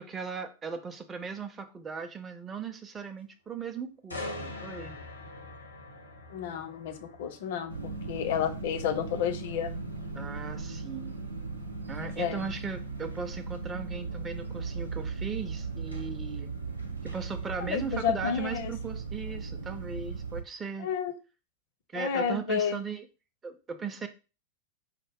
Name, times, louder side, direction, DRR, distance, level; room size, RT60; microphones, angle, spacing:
voice 1, 0.0-5.0 10.1-11.2 11.9-16.5 17.0-20.9 21.9-23.1 23.4-24.1, right 5 dB, 20° right, 7 dB, 0.5 m, -38 dB
sound 1, 4.1-17.9 18.4-18.6, left 2 dB, 80° left, 0.9 m, -46 dB
voice 2, 6.3-9.7 12.0-12.5 17.6-18.7 20.8-21.2 21.9-22.8, left 8 dB, 55° left, 8 dB, 0.6 m, -31 dB
sound 2, 7.7-20.4, right 4 dB, 85° right, 0.6 m, -37 dB
4.7 x 2.0 x 3.5 m, 0.31 s
figure-of-eight pair, 90°, 0 cm